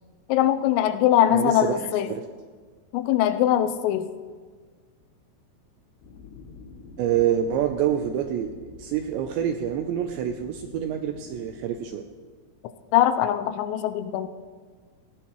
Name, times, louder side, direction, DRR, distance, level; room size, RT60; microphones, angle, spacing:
voice 1, 0.3-2.1 2.9-4.1 12.9-14.3, left 12 dB, 85° left, 10 dB, 3.3 m, -22 dB
voice 2, 1.3-2.2 7.0-12.1, right 10 dB, 85° right, 6 dB, 2.5 m, -27 dB
sound 1, 6.0-11.8, left 4 dB, 70° left, 2.9 m, -46 dB
17.5 x 17.0 x 3.1 m, 1.6 s
omnidirectional pair, 5.9 m